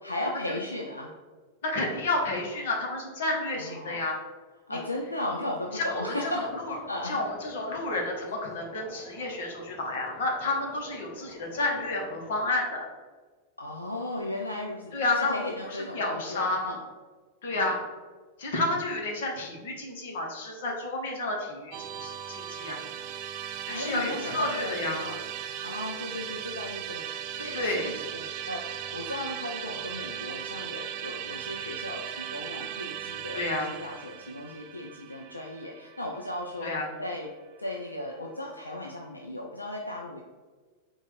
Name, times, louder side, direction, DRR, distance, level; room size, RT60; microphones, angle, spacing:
voice 1, 0.0-1.2 3.6-4.1 4.7-7.2 13.6-16.8 17.5-17.8 23.7-25.2 25.6-36.7 37.0-37.3 37.6-40.2, left 1 dB, 85° left, 0 dB, 0.3 m, -36 dB
voice 2, 1.6-4.2 4.7-4.8 5.7-6.8 7.0-12.9 14.9-15.4 15.7-16.8 17.4-17.8 18.4-22.8 23.7-25.0 27.5-27.9 33.3-33.7 36.6-36.9, left 2 dB, 60° left, 0 dB, 0.9 m, -30 dB
sound 1, 5.6-12.5, left 1 dB, 15° left, 0.8 m, -48 dB
Musical instrument, 21.7-36.9, right 9 dB, 45° right, 0.3 m, -38 dB
4.3 x 2.3 x 4.0 m, 1.4 s
figure-of-eight pair, 90°, 0 cm